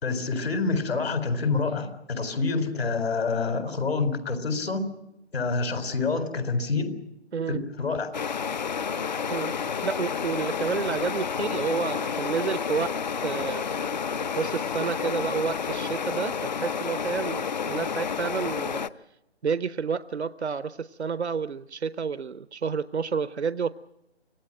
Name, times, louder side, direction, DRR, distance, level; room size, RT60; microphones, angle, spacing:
voice 1, 0.0-4.9 5.3-6.9 7.5-8.1, left 4 dB, 65° left, 9 dB, 4.3 m, -27 dB
sound 1, 8.1-18.9, left 6 dB, 40° left, 0.8 m, -30 dB
voice 2, 9.8-13.0 13.2-13.7 14.4-18.8 19.4-23.7, right 6 dB, 80° right, 15 dB, 0.8 m, -30 dB
25.5 x 17.5 x 9.0 m, 0.90 s
figure-of-eight pair, 150°, 33 cm